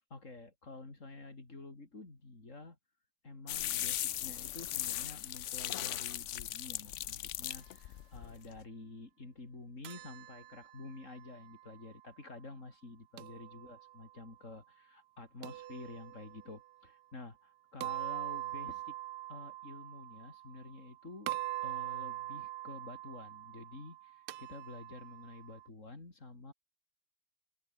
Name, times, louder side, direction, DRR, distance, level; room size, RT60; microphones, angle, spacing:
voice 1, 0.1-2.8 3.2-19.0 19.3-21.3 21.6-26.5, left 3 dB, 45° left, 4.3 m, -49 dB
sound 1, 3.5-8.6, left 12 dB, 75° left, 0.6 m, -38 dB
sound 2, 9.8-11.9 13.2-14.2 15.4-16.6 17.8-20.9 21.3-25.7, right 15 dB, 75° right, 1.2 m, -43 dB
open air
omnidirectional pair, 1.9 m